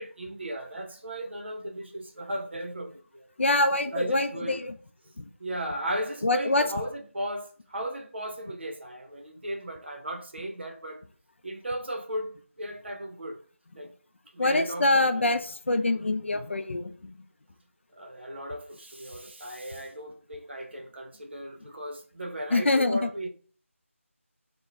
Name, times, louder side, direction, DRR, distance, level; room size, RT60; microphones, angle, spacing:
voice 1, 0.0-3.3 3.9-4.6 5.4-11.0 11.4-13.4 13.7-13.9 14.3-15.3 17.9-23.3, right 1 dB, 50° right, 0.7 m, -36 dB
voice 2, 3.4-4.7 5.2-5.3 6.2-6.6 14.4-17.2 22.5-23.1, left 2 dB, 60° left, 0.4 m, -25 dB
3.4 x 2.1 x 3.3 m
figure-of-eight pair, 170°, 8 cm